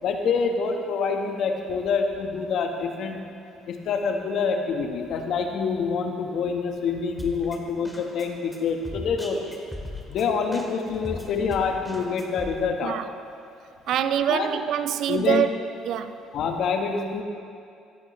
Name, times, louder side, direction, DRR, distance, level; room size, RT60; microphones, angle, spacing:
voice 1, 0.0-3.2 3.7-9.4 10.1-13.0 14.3-14.5 15.1-15.4 16.3-17.2, left 5 dB, 65° left, 3 dB, 1.4 m, -26 dB
Drum kit, 7.2-12.5, left 1 dB, ahead, 2.1 m, -38 dB
voice 2, 13.9-15.5 15.9-16.2, right 10 dB, 65° right, 11 dB, 0.6 m, -24 dB
17.0 x 12.0 x 3.2 m, 2.4 s
supercardioid pair, 70°, 0 cm